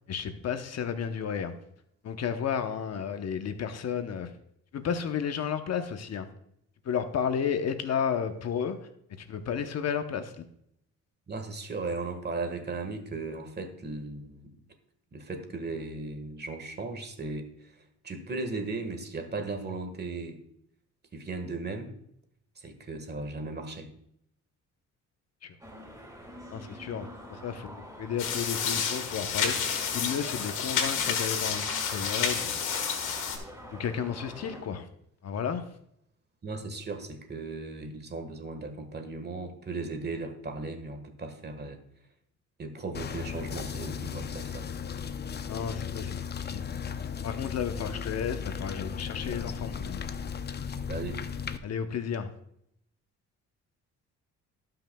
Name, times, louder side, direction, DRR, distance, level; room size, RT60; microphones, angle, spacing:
voice 1, 0.1-1.5 2.0-4.3 4.7-6.3 6.8-8.8 9.2-10.5 25.4-25.6 26.5-32.6 33.7-34.9 35.2-35.7 45.5-46.2 46.5-46.7 47.2-50.0 51.6-52.3, left 7 dB, 55° left, 8 dB, 0.9 m, -32 dB
voice 2, 11.3-14.5 15.1-20.4 21.1-21.9 22.5-23.9 36.4-41.8 42.6-44.7 50.9-51.2, right 3 dB, 35° right, 6 dB, 1.5 m, -37 dB
sound 1, 25.6-34.6, equal, 10° right, 2.2 m, -45 dB
sound 2, 28.2-33.4, left 7 dB, 90° left, 1.5 m, -30 dB
sound 3, 42.9-51.6, left 7 dB, 35° left, 0.6 m, -36 dB
17.0 x 5.8 x 2.3 m, 0.72 s
cardioid pair, 90°, 30 cm